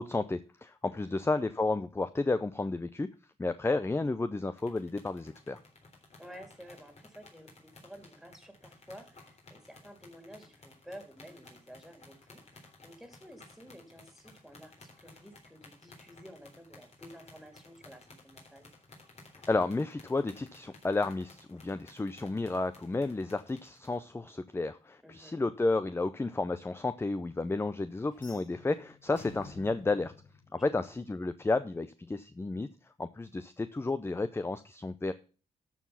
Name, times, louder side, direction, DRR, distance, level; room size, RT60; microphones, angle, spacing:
voice 1, 0.0-3.1 3.4-5.6 19.5-30.1 30.5-32.7 33.0-35.1, left 3 dB, 15° left, 12 dB, 0.6 m, -32 dB
sound 1, 4.5-24.0, left 2 dB, 50° left, 3.5 m, -56 dB
voice 2, 6.2-18.7 25.0-25.4 30.5-31.0, equal, ahead, 6 dB, 2.7 m, -52 dB
sound 2, 28.1-31.2, left 4 dB, 70° left, 4.3 m, -52 dB
13.0 x 4.7 x 5.5 m, 0.37 s
cardioid pair, 75°, 14 cm